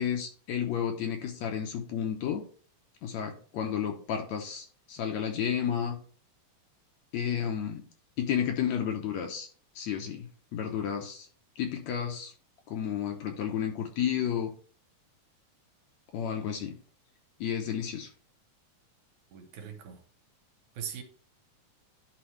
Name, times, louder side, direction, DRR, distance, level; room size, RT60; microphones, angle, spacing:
voice 1, 0.0-2.4 3.0-6.0 7.1-7.8 8.2-9.5 9.8-11.3 11.6-12.3 12.7-14.5 16.1-16.8 17.4-18.1, left 8 dB, 70° left, 4 dB, 1.9 m, -32 dB
voice 2, 19.3-20.0 20.8-21.0, right 8 dB, 75° right, 6 dB, 2.3 m, -40 dB
11.5 x 4.2 x 3.2 m, 0.42 s
omnidirectional pair, 3.7 m